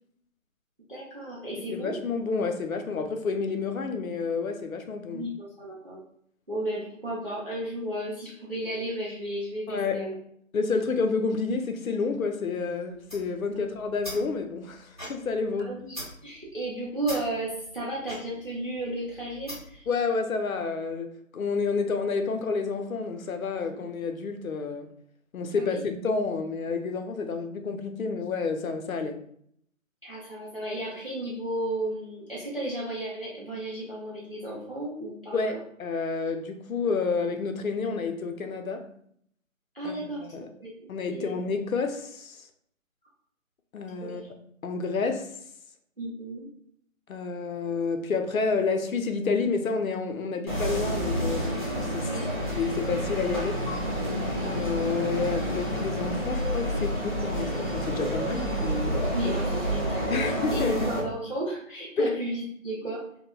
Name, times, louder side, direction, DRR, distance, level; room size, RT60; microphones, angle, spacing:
voice 1, 0.9-1.9 5.1-6.0 6.5-10.1 13.6-13.7 15.6-19.8 23.6-23.8 25.5-25.8 30.0-35.4 39.7-40.3 40.6-40.7 41.1-41.3 44.0-44.3 46.0-46.5 52.0-52.6 53.3-53.5 59.1-63.0, right 1 dB, 45° right, 0.5 m, -34 dB
voice 2, 1.6-5.3 9.7-10.1 10.5-15.7 19.9-24.9 25.3-29.2 35.3-38.9 39.8-40.5 40.9-42.5 43.7-44.2 44.6-45.3 47.1-51.5 51.9-52.1 52.5-53.5 54.4-59.0 60.1-60.9 62.0-62.2, left 4 dB, 80° left, 0.6 m, -29 dB
sound 1, 12.9-19.9, equal, 20° right, 1.3 m, -43 dB
sound 2, 50.5-61.0, equal, 35° left, 0.7 m, -29 dB
3.0 x 2.1 x 2.2 m
figure-of-eight pair, 180°, 41 cm